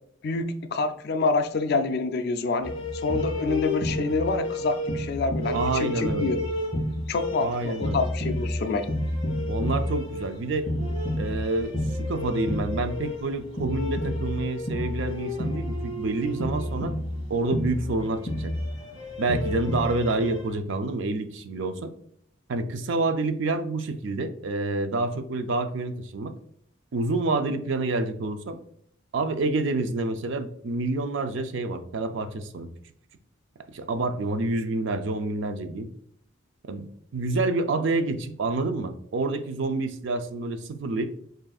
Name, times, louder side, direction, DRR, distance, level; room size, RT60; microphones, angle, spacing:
voice 1, 0.2-6.4 7.1-8.9, left 3 dB, 50° left, 8 dB, 0.3 m, -27 dB
sound 1, 2.6-20.5, left 1 dB, 30° left, 1.8 m, -30 dB
voice 2, 5.5-6.4 7.4-8.1 8.6-8.7 9.5-10.7 11.2-11.7 12.0-16.9 17.3-18.5 19.2-21.9 22.5-26.3 26.9-28.6 29.1-32.7 33.7-35.9 36.7-36.9 37.1-41.1, right 2 dB, 60° right, 9 dB, 0.4 m, -28 dB
7.4 x 2.5 x 2.3 m, 0.67 s
head